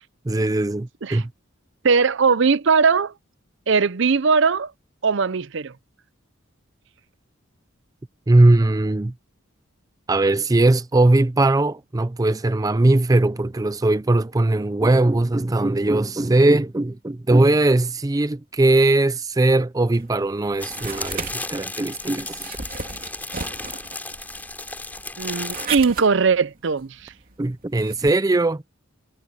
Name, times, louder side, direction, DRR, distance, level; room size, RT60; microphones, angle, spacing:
voice 1, 0.3-1.3 8.3-9.1 10.1-22.5 27.4-28.6, right 2 dB, 15° right, 0.4 m, -19 dB
voice 2, 1.8-3.1 3.7-4.7 5.0-5.7 25.2-27.1, right 5 dB, 60° right, 0.6 m, -19 dB
sound 1, 19.9-28.1, right 5 dB, 45° right, 3.3 m, -36 dB
sound 2, 20.6-25.7, left 2 dB, 10° left, 3.1 m, -34 dB
head